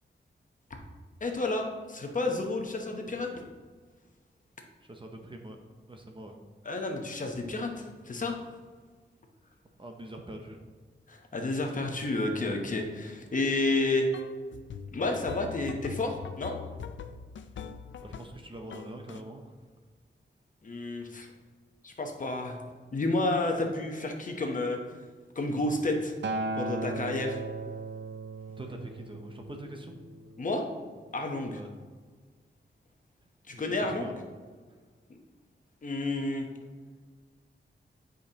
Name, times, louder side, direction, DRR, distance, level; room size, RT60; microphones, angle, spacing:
voice 1, 1.2-3.3 6.6-8.4 11.1-14.1 14.9-16.5 20.6-21.3 21.8-22.6 22.9-24.8 25.4-26.1 26.6-27.4 30.4-30.6 31.1-31.6 33.5-34.1 35.8-36.5, left 2 dB, 45° left, 2 dB, 0.9 m, -30 dB
voice 2, 4.9-5.6 5.9-6.4 9.8-10.6 18.0-19.5 28.6-29.9 31.5-31.7 33.5-34.2, right 1 dB, 25° right, 3 dB, 0.7 m, -43 dB
sound 1, 14.1-18.4 18.7-19.2, left 7 dB, 80° left, 0.4 m, -42 dB
Acoustic guitar, 26.2-30.5 31.4-31.5, right 2 dB, 75° right, 0.5 m, -36 dB
9.4 x 5.2 x 2.9 m, 1.5 s
wide cardioid pair, 155°, 19 cm